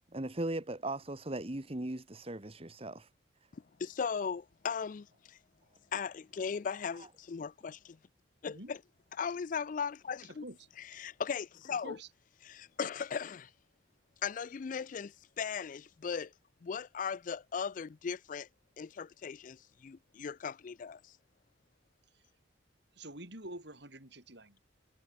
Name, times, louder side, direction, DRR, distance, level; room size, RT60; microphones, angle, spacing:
voice 1, 0.1-3.1, right 1 dB, 30° right, 1.2 m, -38 dB
voice 2, 3.5-5.4 5.9-8.0 8.4-8.8 9.1-10.4 10.8-12.0 12.4-13.5 14.2-16.3 16.6-18.5 18.8-21.1, left 6 dB, 40° left, 0.4 m, -38 dB
voice 3, 10.3-10.7 11.8-12.1 22.1-22.2 22.9-24.6, right 1 dB, 60° right, 7.4 m, -47 dB
head